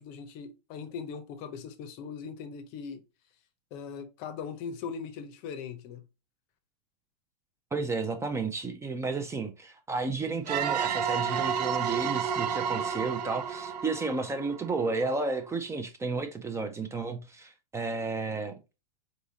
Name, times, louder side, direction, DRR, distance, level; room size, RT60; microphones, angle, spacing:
voice 1, 0.0-3.0 3.7-6.0, left 6 dB, 45° left, 0.7 m, -40 dB
voice 2, 7.7-18.5, right 3 dB, 15° right, 0.5 m, -32 dB
sound 1, 10.5-15.0, right 7 dB, 75° right, 0.5 m, -31 dB
4.0 x 3.6 x 2.7 m
hypercardioid pair, 110°, 21 cm